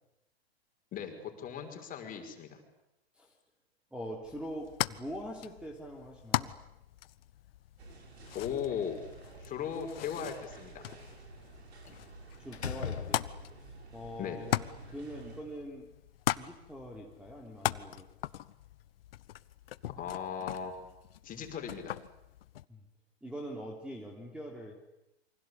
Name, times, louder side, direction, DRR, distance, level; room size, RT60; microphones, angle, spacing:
voice 1, 0.9-2.6 8.3-9.0 9.4-10.8 14.2-14.4 19.9-20.8 21.2-22.0, left 8 dB, 25° left, 5 dB, 5.7 m, -37 dB
voice 2, 3.9-6.5 12.4-13.3 13.9-15.9 16.3-18.1 22.7-22.8 23.2-24.7, equal, 5° right, 2 dB, 3.4 m, -43 dB
sound 1, 4.2-22.7, left 13 dB, 60° left, 1.1 m, -40 dB
sound 2, 7.8-15.4, right 3 dB, 80° right, 6.8 m, -52 dB
Slam, 8.7-9.7 11.9-12.1 12.5-13.7, left 7 dB, 90° left, 1.9 m, -40 dB
28.0 x 25.0 x 8.4 m, 0.89 s
hypercardioid pair, 120°, 32 cm